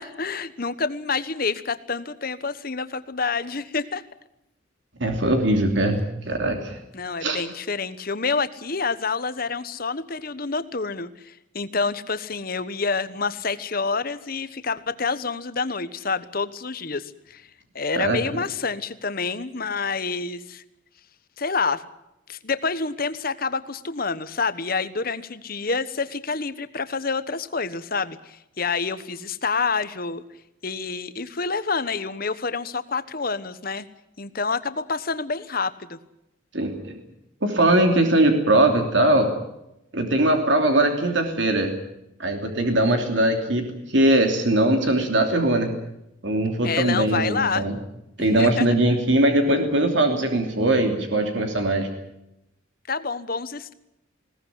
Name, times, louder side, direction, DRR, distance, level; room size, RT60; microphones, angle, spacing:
voice 1, 0.0-4.0 6.9-17.5 17.7-20.6 21.4-21.8 22.3-30.2 30.6-33.9 34.2-36.0 46.6-47.7 48.2-48.7 52.9-53.7, left 4 dB, 45° left, 13 dB, 1.2 m, -28 dB
voice 2, 5.0-6.0 6.2-6.8 7.2-7.4 17.9-18.2 36.5-36.9 37.4-39.3 39.9-41.7 42.2-45.7 46.2-47.8 48.2-51.9, right 1 dB, 65° right, 4 dB, 2.9 m, -21 dB
21.0 x 18.0 x 10.0 m, 0.85 s
head